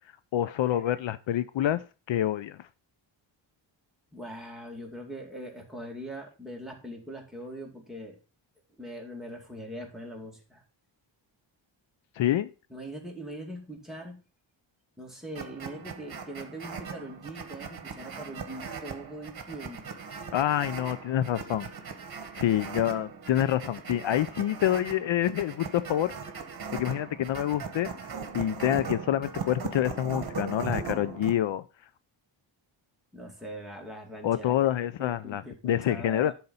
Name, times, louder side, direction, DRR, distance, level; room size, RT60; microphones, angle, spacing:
voice 1, 0.3-2.6 12.2-12.5 20.3-21.7 22.3-26.1 26.7-27.9 28.3-31.6 34.2-36.3, left 11 dB, 70° left, 15 dB, 0.5 m, -27 dB
voice 2, 4.1-8.2 8.8-10.6 12.7-14.2 15.0-19.9 33.1-34.7 35.0-36.3, right 1 dB, ahead, 0 dB, 2.4 m, -42 dB
sound 1, 15.3-31.4, right 5 dB, 50° right, 1.4 m, -39 dB
11.0 x 4.2 x 5.5 m, 0.33 s
wide cardioid pair, 130°, 48 cm